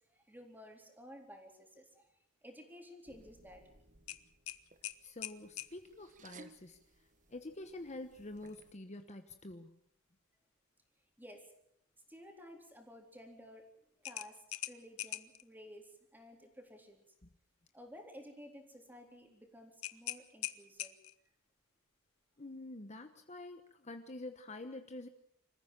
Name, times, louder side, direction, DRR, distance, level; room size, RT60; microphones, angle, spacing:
voice 1, 0.1-2.1 2.4-3.6 11.2-11.5 12.1-13.7 14.0-17.0 17.7-21.0, equal, 10° right, 3 dB, 3.9 m, -54 dB
sound 1, 3.0-8.7, right 3 dB, 40° right, 1.4 m, -61 dB
sound 2, 4.1-5.7 8.4-8.6 9.0-9.1 14.0-15.4 19.8-21.3, left 13 dB, 85° left, 1.1 m, -43 dB
voice 2, 5.0-6.8 7.3-9.8 17.2-17.3 22.4-25.1, left 2 dB, 35° left, 7 dB, 1.1 m, -47 dB
26.5 x 15.0 x 7.5 m, 0.70 s
head